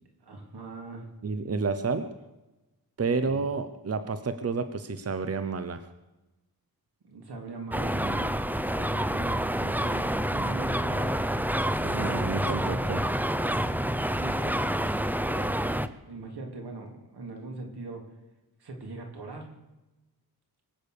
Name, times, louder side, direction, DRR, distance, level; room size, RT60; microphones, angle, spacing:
voice 1, 0.2-1.1 3.2-3.5 7.0-11.2 14.1-15.7 16.0-18.0 18.6-19.5, right 3 dB, 90° right, 2 dB, 3.4 m, -42 dB
voice 2, 1.2-2.1 3.0-5.8 11.8-13.0, right 4 dB, 40° right, 10 dB, 0.9 m, -30 dB
sound 1, 7.7-15.9, equal, 5° right, 0.6 m, -28 dB
23.5 x 8.9 x 6.8 m, 1.0 s
wide cardioid pair, 130°, 38 cm